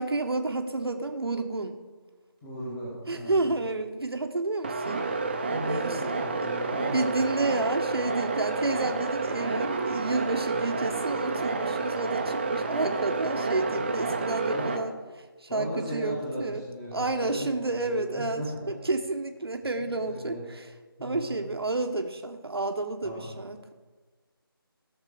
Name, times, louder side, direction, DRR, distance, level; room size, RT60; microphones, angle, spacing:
voice 1, 0.0-1.8 3.1-5.0 5.7-6.2 6.9-16.6 16.9-20.6 21.0-23.7, right 2 dB, 85° right, 5 dB, 1.3 m, -30 dB
voice 2, 2.4-3.5 5.5-7.3 10.4-10.8 13.8-14.1 14.5-14.7 15.5-18.7 19.8-20.4 21.0-21.3 23.0-23.3, equal, 10° left, -8 dB, 1.4 m, -37 dB
sound 1, 4.6-14.8, right 3 dB, 25° right, 0.8 m, -30 dB
17.0 x 6.7 x 5.0 m, 1.3 s
figure-of-eight pair, 170°, 13 cm